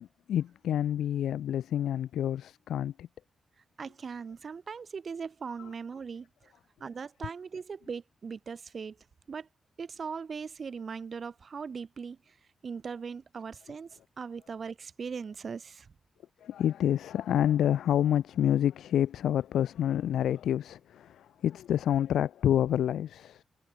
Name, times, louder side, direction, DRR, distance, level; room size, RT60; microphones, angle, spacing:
voice 1, 0.0-3.1 16.4-23.4, left 10 dB, 90° left, 3.0 m, -28 dB
voice 2, 3.8-6.5 6.8-9.0 9.3-9.5 9.8-12.4 12.6-15.9, right 5 dB, 50° right, 4.2 m, -39 dB
cardioid pair, 75°, 0 cm